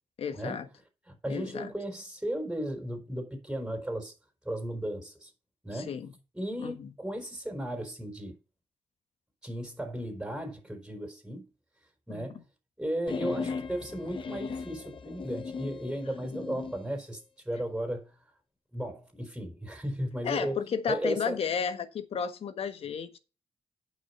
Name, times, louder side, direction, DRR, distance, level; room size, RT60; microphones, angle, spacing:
voice 1, 0.2-0.7 1.3-1.7 5.7-6.1 6.6-6.9 12.1-12.3 20.2-23.2, left 7 dB, 70° left, 1.4 m, -33 dB
voice 2, 1.1-4.1 4.4-5.3 5.6-5.9 6.3-8.4 9.4-11.5 12.1-12.4 12.8-17.2 17.4-18.1 18.7-20.6 20.9-21.4, right 1 dB, 5° right, 4.8 m, -35 dB
sound 1, 13.1-16.8, left 5 dB, 55° left, 1.4 m, -37 dB
9.3 x 5.8 x 5.6 m
supercardioid pair, 55°, 10 cm